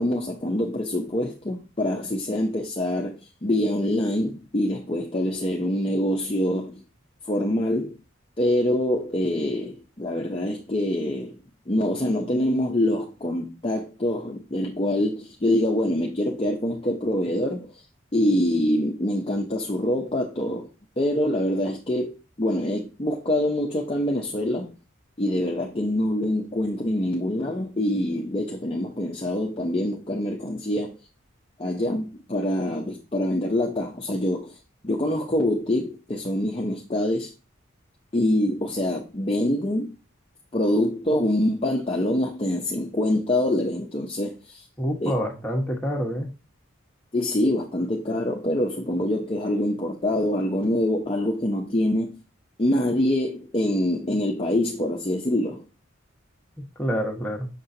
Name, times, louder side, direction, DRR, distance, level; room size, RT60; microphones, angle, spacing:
voice 1, 0.0-6.8 7.3-8.0 8.4-11.4 11.7-17.7 18.1-20.7 21.0-24.7 25.2-30.9 31.6-34.6 34.8-37.3 38.1-39.9 40.5-44.6 45.0-45.1 47.1-52.2 52.6-55.6, left 1 dB, 25° left, 0.6 m, -25 dB
voice 2, 44.8-46.3 56.8-57.5, equal, 10° left, 1.1 m, -27 dB
6.6 x 5.5 x 2.7 m
head